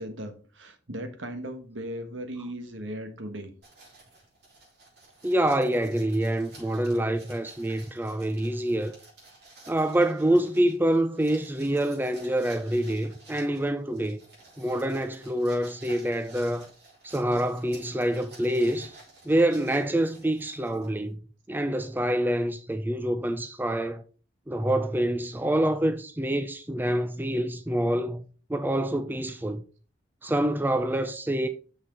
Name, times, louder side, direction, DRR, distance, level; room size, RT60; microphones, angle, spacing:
voice 1, 0.0-3.5, right 1 dB, 85° right, 1.5 m, -37 dB
sound 1, 3.6-21.1, right 2 dB, 60° right, 4.5 m, -53 dB
voice 2, 5.2-9.0 9.7-14.2 14.6-16.7 17.0-19.0 19.3-21.2 21.5-24.0 24.5-28.2 28.5-29.6 30.2-31.5, right 1 dB, 10° right, 0.5 m, -26 dB
6.3 x 6.2 x 4.5 m
head